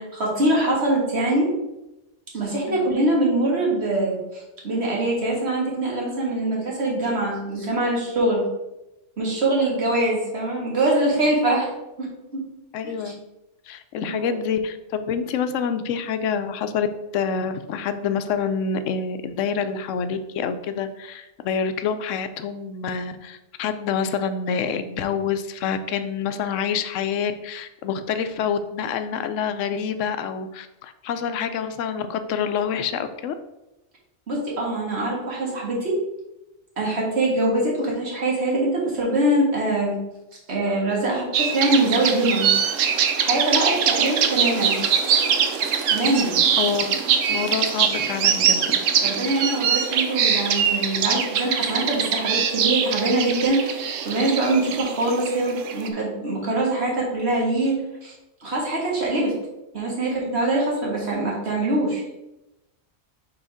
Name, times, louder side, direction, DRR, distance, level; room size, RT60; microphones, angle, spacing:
voice 1, 0.0-1.5 2.3-8.5 9.2-11.7 12.0-12.4 12.8-12.9 14.0-14.1 34.3-35.9 36.8-40.0 40.5-42.5 43.2-44.8 45.9-46.4 49.0-53.8 54.1-58.1 58.4-59.3 59.7-62.0, right 2 dB, 60° right, -3 dB, 1.8 m, -23 dB
voice 2, 12.7-13.2 13.7-16.9 17.1-33.3 46.6-47.0 47.3-48.8, left 6 dB, 85° left, 10 dB, 0.9 m, -27 dB
sound 1, 41.3-55.9, right 7 dB, 85° right, 1.0 m, -23 dB
4.9 x 3.9 x 4.9 m, 0.95 s
omnidirectional pair, 1.3 m